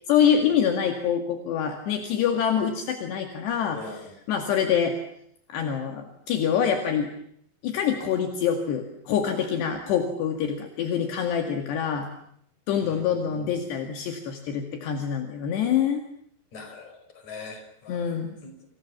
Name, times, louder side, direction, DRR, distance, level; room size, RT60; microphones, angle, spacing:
voice 1, 0.1-5.0 5.5-7.1 7.6-12.1 12.7-16.0 17.9-18.4, left 8 dB, 70° left, 5 dB, 4.0 m, -25 dB
voice 2, 3.7-4.1 12.8-13.0 13.3-13.5 16.5-17.0 17.2-18.1 18.4-18.5, left 4 dB, 40° left, 6 dB, 6.2 m, -41 dB
29.5 x 27.5 x 7.3 m, 0.69 s
omnidirectional pair, 5.2 m